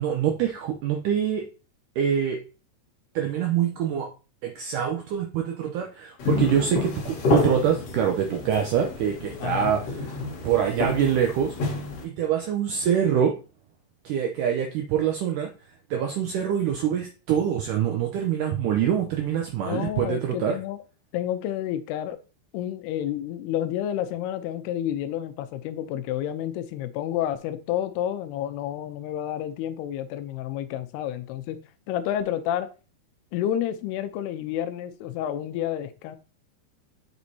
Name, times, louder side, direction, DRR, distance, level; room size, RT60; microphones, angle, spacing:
voice 1, 0.0-1.4 2.0-2.4 3.2-4.1 4.4-9.8 10.4-11.5 12.0-13.3 14.1-15.5 15.9-20.6, right 9 dB, 85° right, 1.8 m, -25 dB
sound 1, 6.2-12.0, left 2 dB, 55° left, 1.8 m, -29 dB
voice 2, 9.4-9.7 19.7-20.8 21.1-22.2 22.5-31.6 31.9-32.7 33.3-36.2, left 11 dB, 85° left, 2.7 m, -30 dB
7.9 x 5.2 x 2.7 m
omnidirectional pair, 4.5 m